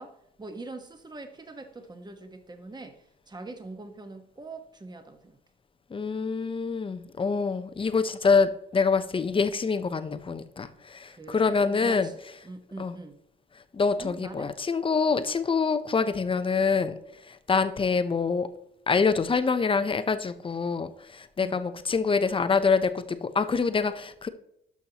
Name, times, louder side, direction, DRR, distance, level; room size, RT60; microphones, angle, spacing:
voice 1, 0.0-3.0 3.3-5.4 11.1-12.2 12.4-13.2 14.0-14.5 21.4-21.6, right 2 dB, 20° right, 6 dB, 1.3 m, -42 dB
voice 2, 5.9-12.1 12.8-12.9 13.7-16.9 17.3-18.5 18.9-24.3, left 5 dB, 25° left, 11 dB, 0.7 m, -26 dB
12.0 x 5.8 x 2.9 m, 0.78 s
cardioid pair, 90°, 20 cm